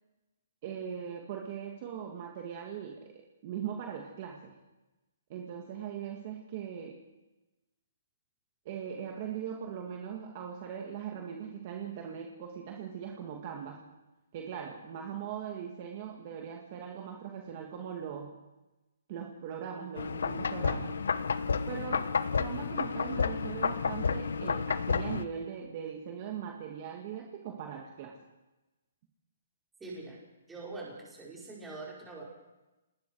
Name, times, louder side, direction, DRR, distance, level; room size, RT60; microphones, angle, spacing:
voice 1, 0.6-3.1 3.4-4.5 5.3-7.0 8.7-13.8 14.3-18.4 19.1-20.9 21.7-22.1 22.4-28.2, right 8 dB, 30° right, 1 dB, 2.3 m, -40 dB
sound 1, 20.0-25.2, left 5 dB, 80° left, 1.3 m, -31 dB
voice 2, 29.8-30.2 30.5-32.2, right 3 dB, 5° right, -5 dB, 5.4 m, -43 dB
28.5 x 19.5 x 4.9 m, 1.0 s
hypercardioid pair, 175°, 0 cm